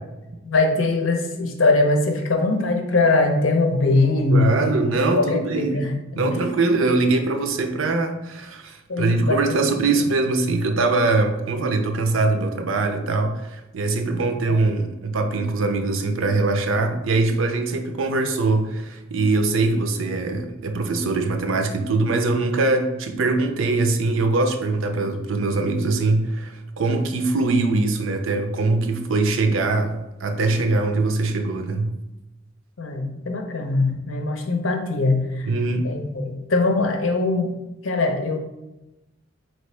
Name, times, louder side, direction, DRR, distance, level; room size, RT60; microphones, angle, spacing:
voice 1, 0.4-6.3 8.9-9.6 14.5-14.6 32.8-35.5 35.8-37.5 37.8-38.4, left 3 dB, 90° left, 4 dB, 0.7 m, -21 dB
voice 2, 4.3-5.8 6.2-31.9 35.4-35.9, right 3 dB, 90° right, 6 dB, 0.5 m, -22 dB
4.3 x 3.2 x 3.2 m, 1.0 s
head